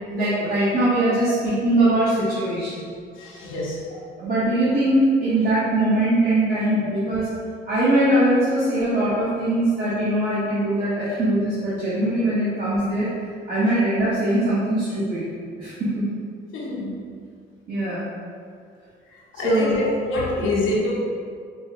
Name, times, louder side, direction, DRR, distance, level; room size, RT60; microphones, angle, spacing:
voice 1, 0.1-2.9 4.2-7.3 7.7-13.1 13.5-15.2 15.6-16.1 17.7-18.0 19.4-19.7, right 1 dB, 45° right, -11 dB, 1.0 m, -21 dB
voice 2, 3.2-3.8 16.5-17.1 19.3-20.9, left 1 dB, 80° left, -4 dB, 0.8 m, -25 dB
4.5 x 2.2 x 2.8 m, 2.2 s
cardioid pair, 90°, 20 cm